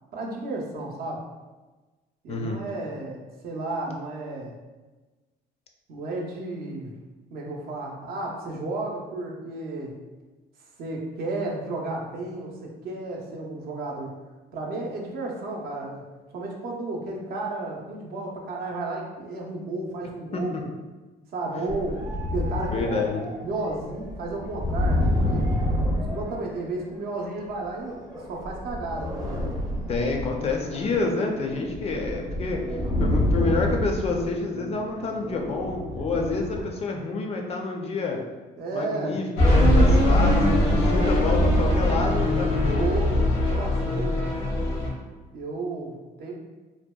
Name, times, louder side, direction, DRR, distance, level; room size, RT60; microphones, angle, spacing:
voice 1, 0.1-1.3 2.2-4.5 5.9-6.9 7.3-9.9 10.8-14.1 14.5-16.0 16.3-20.7 21.3-22.0 22.3-23.0 23.4-25.5 26.1-29.5 38.6-39.2 42.8-44.2 45.3-46.3, right 2 dB, 65° right, -1 dB, 0.6 m, -33 dB
voice 2, 2.3-2.6 20.3-20.6 21.5-21.7 22.7-23.3 29.9-38.2 38.7-42.9, left 3 dB, 40° left, 2 dB, 0.4 m, -28 dB
sound 1, 21.7-27.0 27.8-36.7, left 1 dB, 20° right, 0.5 m, -29 dB
sound 2, 39.4-44.9, left 1 dB, 90° left, 0.8 m, -21 dB
2.7 x 2.1 x 2.2 m, 1.2 s
cardioid pair, 110°, 17 cm